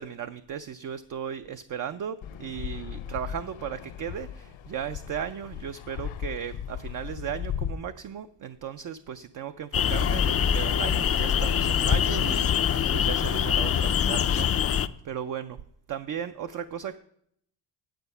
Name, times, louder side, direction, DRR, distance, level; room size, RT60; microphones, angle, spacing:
voice 1, 0.0-14.5 15.0-15.6 15.9-17.0, right 8 dB, 45° right, 10 dB, 0.5 m, -36 dB
Fixed-wing aircraft airplane, 2.2-7.7, left 9 dB, 70° left, 0.8 m, -37 dB
sound 1, 9.7-14.9, left 8 dB, 35° left, 0.4 m, -24 dB
9.2 x 8.1 x 5.4 m, 0.70 s
cardioid pair, 115°, 48 cm